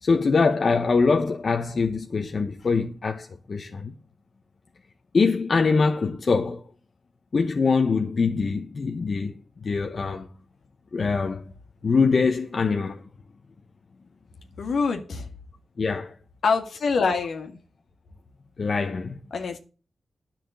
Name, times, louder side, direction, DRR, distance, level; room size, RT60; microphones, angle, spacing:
voice 1, 0.0-3.9 5.1-6.6 7.3-9.3 9.6-10.3 10.9-11.5 11.8-13.0 15.8-16.1 18.6-19.2, left 4 dB, 60° left, 1.0 m, -23 dB
voice 2, 14.6-15.3 16.4-17.6 19.3-19.6, left 4 dB, 80° left, 1.9 m, -25 dB
10.0 x 6.0 x 7.9 m
supercardioid pair, 40°, 0 cm